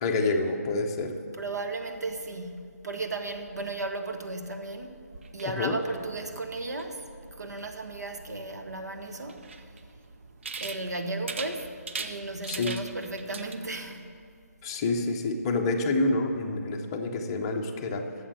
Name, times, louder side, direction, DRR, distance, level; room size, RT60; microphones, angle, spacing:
voice 1, 0.0-1.2 5.5-5.8 12.5-12.7 14.6-18.1, left 2 dB, 20° left, 2 dB, 0.6 m, -28 dB
voice 2, 1.3-5.0 5.3-7.0 7.3-9.5 10.6-11.7 12.0-14.1, right 2 dB, 85° right, 5 dB, 1.2 m, -35 dB
sound 1, 5.1-13.6, right 4 dB, 45° right, 0.6 m, -42 dB
8.5 x 7.1 x 7.7 m, 2.2 s
hypercardioid pair, 165°, 9 cm